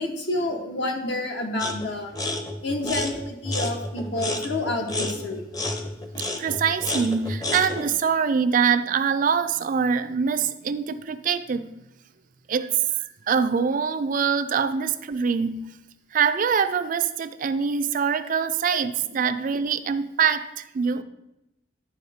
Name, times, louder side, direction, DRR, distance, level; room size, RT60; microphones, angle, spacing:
voice 1, 0.0-2.1 2.6-5.5, left 2 dB, 75° left, 1.1 m, -29 dB
sound 1, 1.6-1.9 2.1-7.9, left 2 dB, 20° left, 0.6 m, -30 dB
voice 2, 6.4-11.7 12.5-12.7 13.3-15.6 16.1-21.0, right 6 dB, 45° right, 0.3 m, -24 dB
11.0 x 4.2 x 3.5 m
head